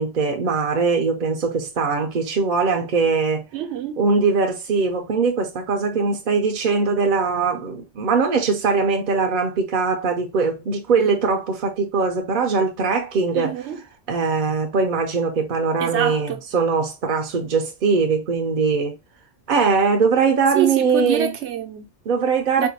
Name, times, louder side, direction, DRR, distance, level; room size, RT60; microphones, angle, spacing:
voice 1, 0.0-3.4 4.0-13.6 14.1-19.0 19.5-21.3 22.1-22.7, right 5 dB, 55° right, 0.6 m, -21 dB
voice 2, 3.5-4.0 13.3-13.8 15.8-16.4 20.5-21.9 22.6-22.7, right 9 dB, 80° right, 0.9 m, -26 dB
4.4 x 2.2 x 2.7 m
omnidirectional pair, 1.2 m